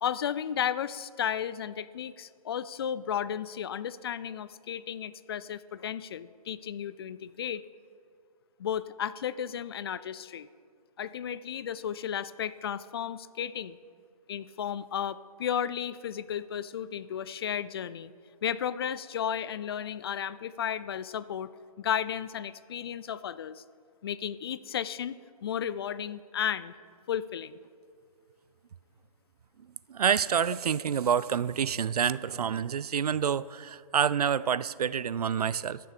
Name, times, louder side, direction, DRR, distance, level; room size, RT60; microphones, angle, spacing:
voice 1, 0.0-7.7 8.6-10.5 11.0-13.8 14.3-18.1 18.4-21.5 21.8-23.6 24.0-26.7 27.1-27.6, left 9 dB, 40° left, 17 dB, 0.4 m, -33 dB
voice 2, 29.9-35.9, right 8 dB, 75° right, 19 dB, 0.4 m, -28 dB
12.0 x 6.7 x 6.7 m, 2.2 s
hypercardioid pair, 145°, 20 cm